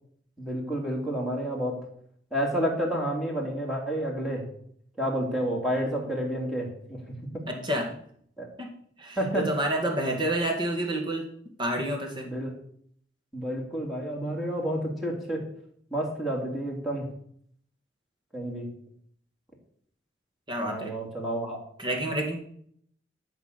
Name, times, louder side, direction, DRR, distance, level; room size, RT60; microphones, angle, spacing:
voice 1, 0.4-1.8 2.3-4.4 5.0-7.0 7.3-7.4 8.4-8.5 9.2-9.5 12.2-12.5 13.3-15.4 15.9-17.0 18.3-18.7 20.6-21.6, right 1 dB, ahead, -3 dB, 3.2 m, -30 dB
voice 2, 7.5-7.9 8.6-8.7 9.0-11.3 11.6-12.3 20.5-20.9 21.8-22.4, right 1 dB, 25° right, 2 dB, 2.1 m, -29 dB
12.5 x 6.3 x 6.8 m, 0.64 s
head